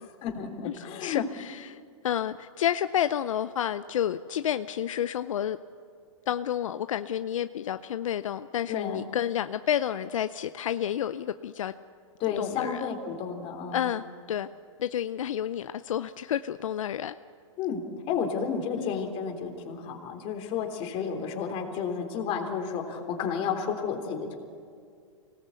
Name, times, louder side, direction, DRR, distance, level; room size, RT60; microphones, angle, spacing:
voice 1, 0.0-1.2 8.7-9.0 12.2-13.9 17.6-24.3, left 6 dB, 35° left, 3 dB, 3.4 m, -32 dB
voice 2, 0.6-5.6 6.3-11.7 12.3-12.9 13.7-14.5 14.8-17.2 18.8-19.0, left 10 dB, 80° left, 12 dB, 0.6 m, -30 dB
25.5 x 18.5 x 8.3 m, 2.3 s
hypercardioid pair, 135°, 17 cm